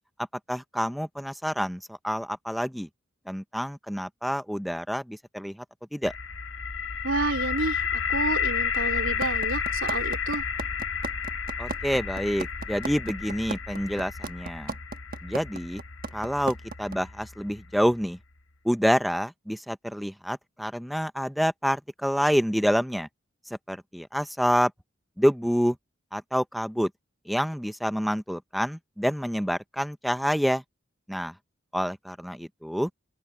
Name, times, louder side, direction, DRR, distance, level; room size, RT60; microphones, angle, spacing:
voice 1, 0.5-2.9 3.3-5.6 5.9-6.1 11.6-14.7 15.2-15.8 16.1-18.2 18.6-23.1 23.7-24.7 25.2-25.8 26.1-26.9 27.3-30.6 31.1-31.3 31.7-32.9, equal, ahead, 0.5 m, -27 dB
sound 1, 6.0-17.9, left 6 dB, 80° left, 1.3 m, -31 dB
voice 2, 7.0-10.4, right 3 dB, 80° right, 3.2 m, -30 dB
sound 2, 9.2-17.0, right 3 dB, 45° right, 1.2 m, -34 dB
head